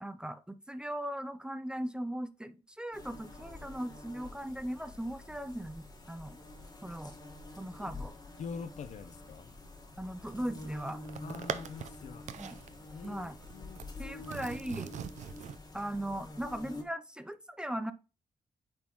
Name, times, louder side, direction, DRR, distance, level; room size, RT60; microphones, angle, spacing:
voice 1, 0.0-6.4 6.8-7.1 7.6-8.1 10.0-11.0 12.4-12.6 13.0-13.3 14.0-14.9 15.7-17.9, right 1 dB, 5° right, 0.4 m, -38 dB
sound 1, 2.9-16.8, left 2 dB, 30° left, 1.5 m, -47 dB
voice 2, 8.4-9.5 11.2-12.3 12.9-14.0, left 6 dB, 70° left, 0.7 m, -45 dB
sound 2, 10.4-11.9 12.3-12.7 13.0-13.9 14.2-15.6, right 8 dB, 70° right, 0.5 m, -41 dB
8.7 x 3.8 x 3.0 m
cardioid pair, 125°, 13 cm